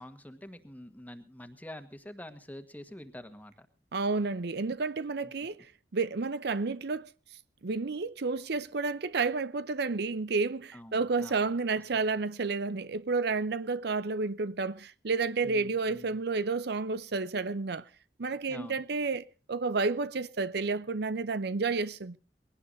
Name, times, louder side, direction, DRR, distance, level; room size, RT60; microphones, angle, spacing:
voice 1, 0.0-3.7 5.2-5.3 10.7-11.5 15.4-16.2 18.5-18.8, left 1 dB, 10° left, 1.6 m, -46 dB
voice 2, 3.9-7.1 7.6-17.9 18.2-22.2, right 4 dB, 65° right, 0.7 m, -31 dB
22.0 x 18.0 x 2.7 m
head